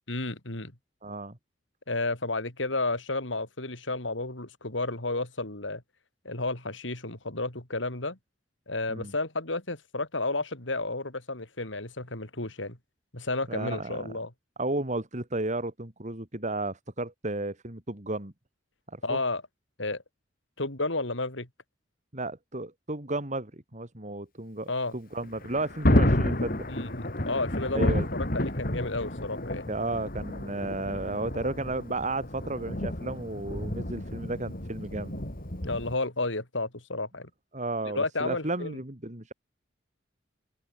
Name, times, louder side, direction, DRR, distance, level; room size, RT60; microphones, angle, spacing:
voice 1, 0.1-0.7 1.9-5.8 6.2-8.2 8.7-12.8 13.1-14.3 19.0-19.4 19.8-20.0 20.6-21.5 24.7-25.0 26.7-28.0 28.3-29.7 35.6-37.3 37.9-38.8, left 2 dB, 80° left, 4.2 m, -32 dB
voice 2, 1.0-1.4 8.9-9.1 13.5-14.0 14.6-18.3 18.9-19.2 22.1-26.7 27.7-28.1 29.7-35.2 37.5-39.3, right 2 dB, 40° right, 3.0 m, -33 dB
Thunder, 25.2-36.0, left 1 dB, 50° left, 3.9 m, -30 dB
head